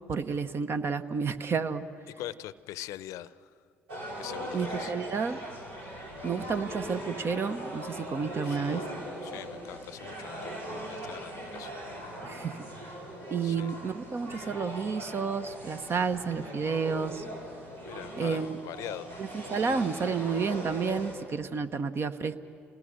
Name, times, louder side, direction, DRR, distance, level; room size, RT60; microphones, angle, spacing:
voice 1, 0.1-1.8 4.5-5.4 6.2-8.8 12.2-12.6 13.3-17.2 18.2-18.6 19.2-22.4, right 5 dB, 45° right, 10 dB, 1.1 m, -31 dB
voice 2, 2.2-3.5 4.2-4.9 8.2-8.9 9.2-11.7 13.4-13.7 17.8-19.1, left 14 dB, 70° left, 17 dB, 0.7 m, -43 dB
sound 1, 3.9-21.1, equal, 85° right, 4.6 m, -40 dB
28.0 x 18.5 x 6.5 m, 2.4 s
hypercardioid pair, 55°, 6 cm